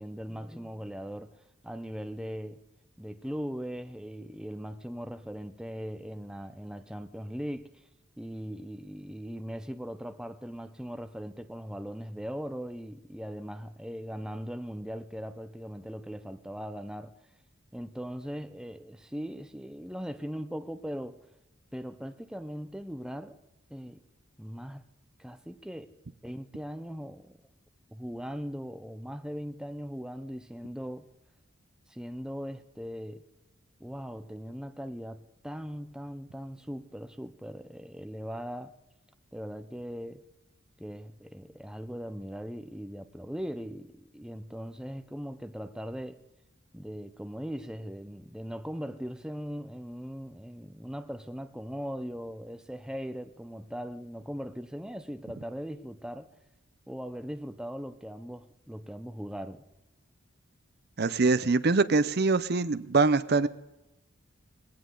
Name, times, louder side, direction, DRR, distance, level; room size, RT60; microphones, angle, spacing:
voice 1, 0.0-1.4 1.6-2.6 3.0-7.8 8.2-17.2 17.7-21.2 21.7-23.4 23.7-24.0 24.4-24.8 25.2-25.9 26.2-27.4 27.9-31.1 31.9-33.2 33.8-38.7 39.3-40.2 40.8-46.2 46.7-56.3 56.9-59.6, equal, 5° right, 0.6 m, -39 dB
voice 2, 61.0-63.5, right 3 dB, 50° right, 0.6 m, -24 dB
20.5 x 17.5 x 3.8 m
head